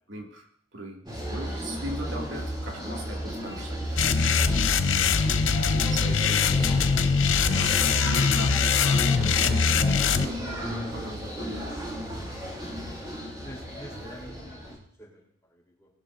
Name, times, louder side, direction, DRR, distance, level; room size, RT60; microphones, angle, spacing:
voice 1, 0.1-4.0 4.3-4.8 5.9-6.8 7.4-11.7, right 1 dB, 75° right, 0 dB, 2.4 m, -39 dB
sound 1, 1.1-14.8, equal, 25° right, 3.9 m, -34 dB
sound 2, 4.0-10.3, left 5 dB, 80° left, 0.7 m, -22 dB
voice 2, 5.1-5.4 6.3-7.0 12.2-12.8 13.4-15.9, equal, 15° left, -2 dB, 3.4 m, -48 dB
20.0 x 11.0 x 2.6 m, 0.65 s
head